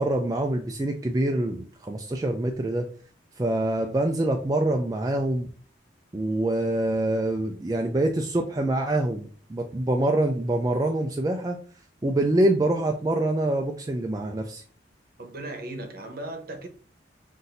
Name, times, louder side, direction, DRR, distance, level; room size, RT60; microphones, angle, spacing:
voice 1, 0.0-2.9 3.4-5.5 6.1-11.6 12.0-14.6, right 1 dB, 20° right, 0.3 m, -25 dB
voice 2, 15.2-16.7, right 2 dB, 55° right, 0.9 m, -37 dB
5.7 x 2.6 x 2.6 m
head